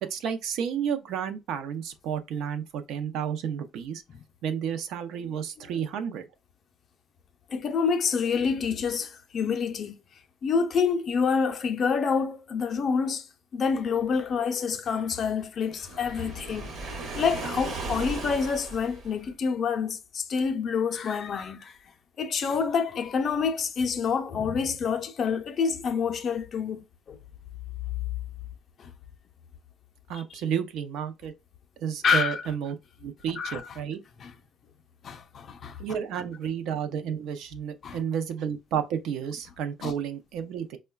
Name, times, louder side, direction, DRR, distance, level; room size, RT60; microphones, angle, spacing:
voice 1, 0.0-4.0 4.4-6.3 30.1-31.3 31.8-32.7 33.0-34.0 35.8-40.8, right 8 dB, 75° right, 0.5 m, -31 dB
voice 2, 7.5-10.0 10.4-13.3 13.5-16.7 17.1-21.8 22.2-27.2 28.8-28.9 32.0-32.4 33.4-33.6 34.2-34.3 35.0-35.8 37.8-38.0 39.8-39.9, left 6 dB, 45° left, 0.4 m, -27 dB
Waves surf, 15.8-19.3, right 3 dB, 55° right, 0.9 m, -36 dB
4.5 x 2.1 x 2.2 m
cardioid pair, 135°, 0 cm